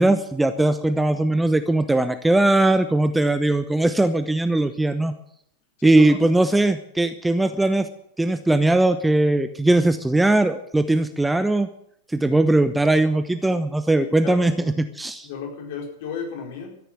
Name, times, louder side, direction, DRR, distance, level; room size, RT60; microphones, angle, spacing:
voice 1, 0.0-5.1 5.8-7.9 8.2-11.7 12.1-14.5 15.0-15.3, right 2 dB, 5° right, 11 dB, 0.9 m, -19 dB
voice 2, 5.8-6.2 13.5-13.6 14.0-14.7 15.2-16.8, left 6 dB, 50° left, 2 dB, 4.4 m, -34 dB
13.5 x 10.5 x 9.2 m, 0.70 s
figure-of-eight pair, 90°, 0 cm